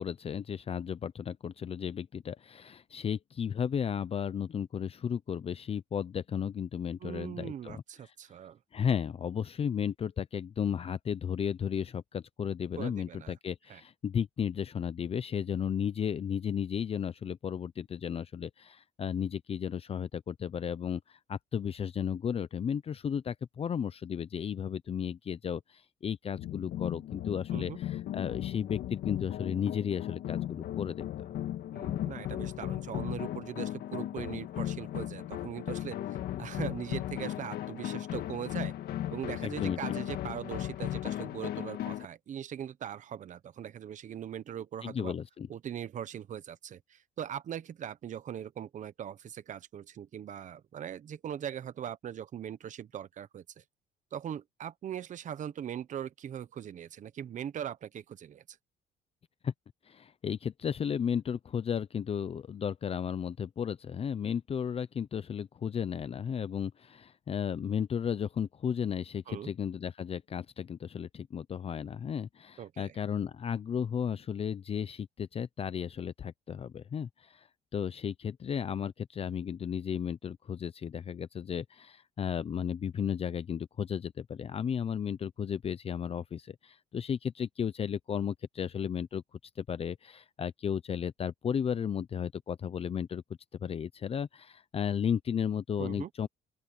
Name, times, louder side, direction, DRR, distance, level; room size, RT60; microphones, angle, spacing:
voice 1, 0.0-7.8 8.7-31.1 39.4-39.8 44.8-45.5 59.4-59.5 59.9-89.2 89.6-93.2 93.6-96.3, left 8 dB, 35° left, 0.7 m, -34 dB
voice 2, 7.0-8.6 12.8-13.3 13.7-13.8 27.5-27.8 31.7-36.0 36.4-38.7 39.1-45.1 45.5-53.6 54.1-58.6 69.3-69.5 72.6-73.0 95.8-96.1, right 9 dB, 50° right, 1.1 m, -40 dB
sound 1, 26.4-42.1, left 12 dB, 70° left, 1.9 m, -36 dB
open air
cardioid pair, 110°, 17 cm